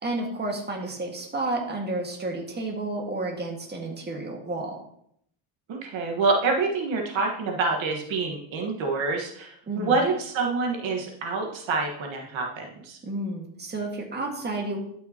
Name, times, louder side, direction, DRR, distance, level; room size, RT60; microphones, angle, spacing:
voice 1, 0.0-4.8 9.7-10.1 13.0-14.8, right 2 dB, 20° right, 0 dB, 1.8 m, -31 dB
voice 2, 5.7-13.0, right 3 dB, 65° right, 1 dB, 1.6 m, -27 dB
12.0 x 5.6 x 2.9 m, 0.70 s
cardioid pair, 115°, 50 cm